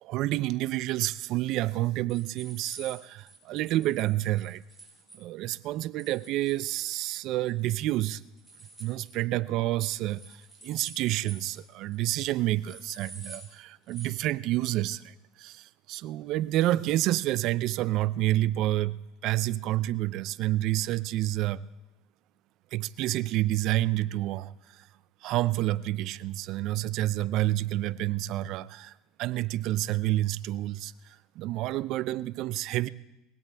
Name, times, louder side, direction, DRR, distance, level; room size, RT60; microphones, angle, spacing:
voice 1, 0.0-4.6 5.1-8.2 8.8-21.7 22.7-24.9 25.2-28.9 29.2-32.9, right 15 dB, 60° right, 18 dB, 0.5 m, -29 dB
sound 1, 1.5-5.2 6.0-7.2 7.4-7.8 8.1-9.2 10.1-11.6 11.9-12.0 12.2-12.3 12.7-13.5 13.9-14.1, right 3 dB, 5° right, 6.8 m, -48 dB
21.0 x 17.0 x 3.4 m, 0.97 s
supercardioid pair, 100°, 0 cm